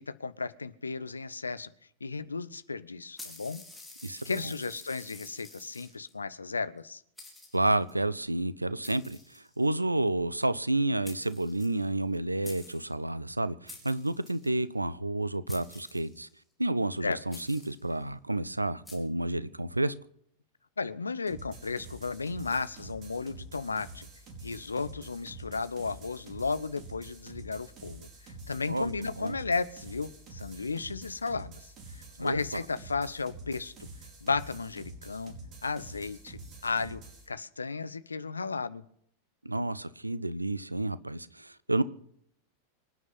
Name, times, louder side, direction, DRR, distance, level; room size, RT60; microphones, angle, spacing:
voice 1, 0.0-1.7 2.0-3.6 4.2-7.0 17.0-17.4 20.8-24.1 24.4-33.9 34.2-35.4 35.6-37.0 37.3-38.8, left 4 dB, 75° left, 14 dB, 0.9 m, -34 dB
sound 1, 3.2-6.1 6.8-6.9 7.2-7.9 8.8-9.8 10.8-10.9 11.1-12.2 12.4-12.9 13.7-14.5 15.5-16.4 17.3-17.9 18.9-19.0, left 2 dB, 5° left, 4.9 m, -49 dB
voice 2, 4.0-4.5 7.5-16.3 16.6-19.9 28.7-29.4 32.2-32.6 39.4-41.8, right 2 dB, 85° right, 17 dB, 0.8 m, -30 dB
sound 2, 21.3-37.3, right 2 dB, 35° right, 4.8 m, -47 dB
25.5 x 9.6 x 5.4 m, 0.67 s
figure-of-eight pair, 90°, 0 cm